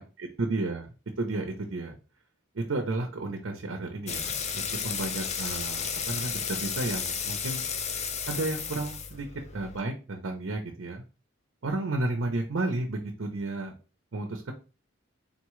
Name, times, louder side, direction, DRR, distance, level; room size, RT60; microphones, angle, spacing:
voice 1, 0.0-2.0 2.5-7.6 8.3-9.3 9.5-11.0 11.6-13.7 14.1-14.5, right 2 dB, 70° right, 4 dB, 0.7 m, -32 dB
sound 1, 4.1-9.8, left 7 dB, 30° left, 0.4 m, -33 dB
3.9 x 3.6 x 3.1 m, 0.33 s
head